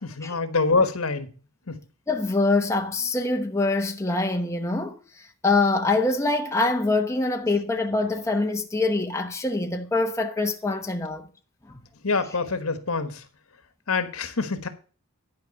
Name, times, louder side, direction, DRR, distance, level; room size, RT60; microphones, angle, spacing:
voice 1, 0.0-1.3 1.7-1.8 12.0-13.2 13.9-14.7, left 4 dB, 75° left, 1.4 m, -25 dB
voice 2, 2.1-11.3 11.7-11.8, left 2 dB, 15° left, 0.9 m, -24 dB
11.5 x 5.1 x 6.9 m
head